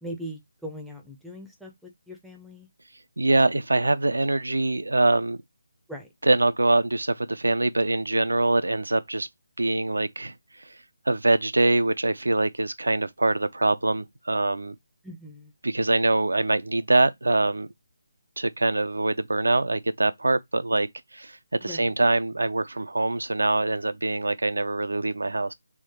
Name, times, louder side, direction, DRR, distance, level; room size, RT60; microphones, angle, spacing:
voice 1, 0.0-2.7 5.9-6.1 15.0-15.5 21.6-21.9, equal, ahead, 0.5 m, -40 dB
voice 2, 3.2-5.4 6.2-9.3 9.6-10.8 11.1-14.8 15.6-17.7 18.4-25.5, right 2 dB, 75° right, 0.3 m, -24 dB
3.5 x 3.1 x 4.1 m
figure-of-eight pair, 150°, 0 cm